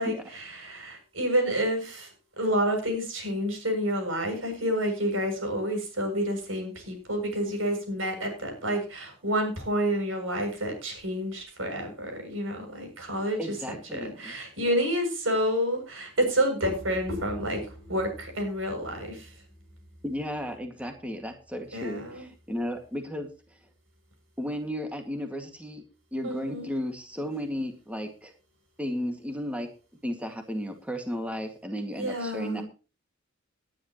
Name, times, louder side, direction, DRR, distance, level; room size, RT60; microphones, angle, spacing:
voice 1, 0.0-2.1 2.4-13.5 13.9-19.3 21.7-22.3 26.2-26.7 32.0-32.6, equal, 90° right, 4 dB, 7.2 m, -29 dB
voice 2, 13.4-14.4 20.0-23.3 24.4-25.8 26.1-28.3 28.8-29.7 30.0-32.6, equal, 5° right, 4 dB, 2.0 m, -34 dB
19.0 x 10.5 x 3.0 m, 0.33 s
head